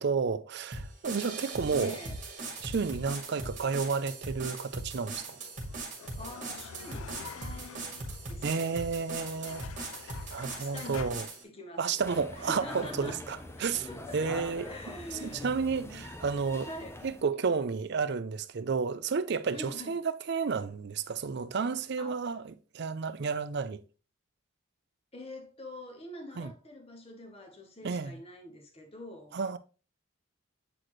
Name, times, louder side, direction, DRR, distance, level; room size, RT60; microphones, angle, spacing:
voice 1, 0.0-2.0 2.6-5.4 8.4-9.7 10.3-11.3 11.8-13.9 14.1-14.7 15.1-16.7 17.0-23.8 26.4-26.5 27.8-28.2 29.3-29.6, right 5 dB, 50° right, 0.4 m, -31 dB
sound 1, 0.7-11.4, right 2 dB, 35° right, 1.8 m, -40 dB
voice 2, 1.7-2.2 6.2-8.8 10.5-11.1 11.4-12.0 12.3-13.3 13.7-14.2 14.6-16.1 16.6-17.0 19.5-19.9 22.0-22.2 25.1-29.4, left 1 dB, 30° left, 1.0 m, -45 dB
sound 2, 5.3-11.1, left 7 dB, 70° left, 0.4 m, -48 dB
sound 3, 12.0-17.2, left 1 dB, 10° left, 0.6 m, -43 dB
7.7 x 4.1 x 3.1 m
head